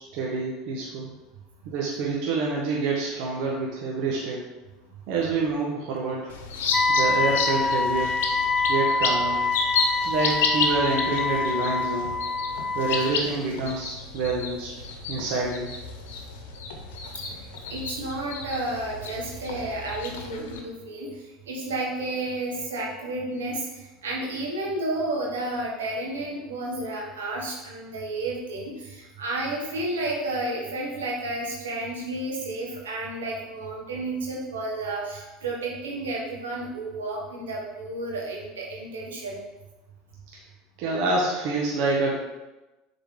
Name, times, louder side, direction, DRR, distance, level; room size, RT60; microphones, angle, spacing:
voice 1, 0.1-1.1 1.6-4.4 5.1-6.3 6.9-8.2 8.7-9.5 10.0-12.2 12.7-14.7 15.1-15.7 20.4-20.6 40.3-40.4 40.8-42.1, right 3 dB, 65° right, -2 dB, 1.1 m, -27 dB
sound 1, 6.3-20.6, left 4 dB, 80° left, 0.9 m, -31 dB
Wind instrument woodwind instrument, 6.7-13.2, left 3 dB, 15° left, 0.4 m, -26 dB
voice 2, 17.3-39.5, right 2 dB, 90° right, -2 dB, 1.6 m, -31 dB
7.0 x 3.9 x 3.7 m, 1.1 s
hypercardioid pair, 90°, 0 cm